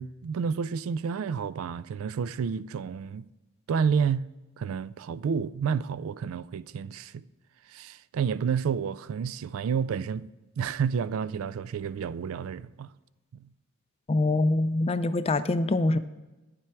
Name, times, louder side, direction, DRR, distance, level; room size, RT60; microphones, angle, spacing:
voice 1, 0.0-3.3 3.7-4.2 4.6-7.2 7.7-10.3 10.6-12.9 13.3-13.5, right 6 dB, 65° right, 0.3 m, -30 dB
voice 2, 14.1-16.0, left 2 dB, 25° left, 0.4 m, -24 dB
9.7 x 7.6 x 4.6 m
head